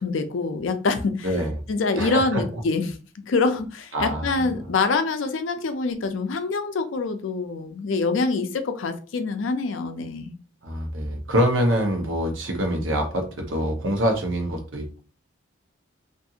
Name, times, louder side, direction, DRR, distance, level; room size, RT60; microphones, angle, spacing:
voice 1, 0.0-1.3 1.7-10.3, left 3 dB, 70° left, 7 dB, 0.4 m, -25 dB
voice 2, 1.2-1.6 2.0-2.6 3.9-4.7 10.6-15.0, equal, 70° right, 3 dB, 0.8 m, -25 dB
2.5 x 2.4 x 2.7 m, 0.36 s
head